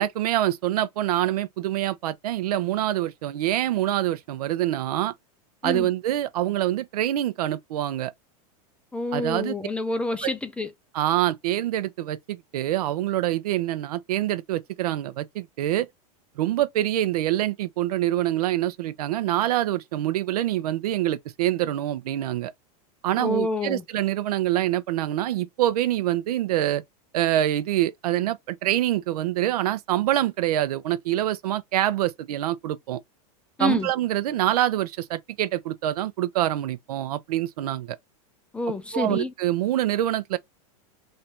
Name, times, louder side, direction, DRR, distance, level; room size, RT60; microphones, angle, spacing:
voice 1, 0.0-5.1 5.6-8.1 9.1-9.6 10.2-10.3 10.9-15.9 16.4-22.5 23.0-26.8 27.1-33.0 33.6-38.0 38.9-40.4, right 13 dB, 80° right, 0.6 m, -25 dB
voice 2, 8.9-10.7 23.2-23.8 33.6-33.9 38.5-39.3, left 2 dB, 5° left, 0.3 m, -28 dB
3.3 x 2.6 x 4.3 m
supercardioid pair, 155°, 19 cm